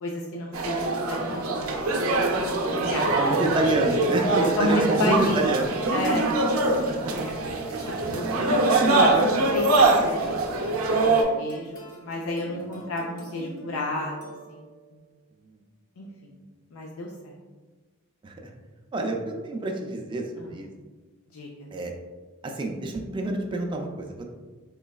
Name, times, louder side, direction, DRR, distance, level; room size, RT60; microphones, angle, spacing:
voice 1, 0.0-3.1 4.6-5.4 5.9-6.4 7.8-8.5 8.9-10.8 11.1-11.7 12.0-14.6 16.0-16.1 16.7-17.3 20.4-20.5 21.3-21.5, left 2 dB, 85° left, -2 dB, 0.4 m, -31 dB
sound 1, 0.5-11.2, right 2 dB, 75° right, 0.5 m, -23 dB
voice 2, 3.2-5.7 6.9-7.1 8.0-8.4 9.0-9.4 18.2-18.5 18.9-20.7 21.7-21.9 22.4-24.2, right 2 dB, 25° right, 1 dB, 0.3 m, -28 dB
sound 2, 9.5-14.9, right 1 dB, 40° left, 0.7 m, -44 dB
3.8 x 3.2 x 2.3 m, 1.3 s
head